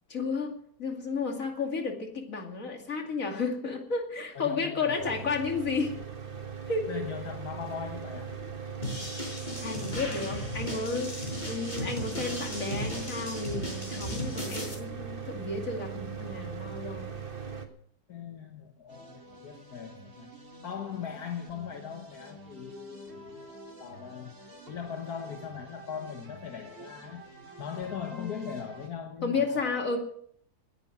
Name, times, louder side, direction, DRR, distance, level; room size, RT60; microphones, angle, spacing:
voice 1, 0.1-6.0 6.7-6.9 9.6-17.1 28.1-28.5 29.2-30.0, left 4 dB, 55° left, 3 dB, 2.8 m, -32 dB
voice 2, 4.4-5.4 6.6-8.4 18.1-20.3 20.6-27.2 27.6-29.8, left 7 dB, 75° left, 4 dB, 1.8 m, -40 dB
Mechanical fan, 5.0-17.7, right 6 dB, 35° right, 1.7 m, -39 dB
sound 1, 8.8-14.7, left 1 dB, 30° left, 4.7 m, -36 dB
sound 2, 18.9-28.9, right 2 dB, 50° right, 3.2 m, -50 dB
19.5 x 10.5 x 6.0 m, 0.64 s
omnidirectional pair, 1.7 m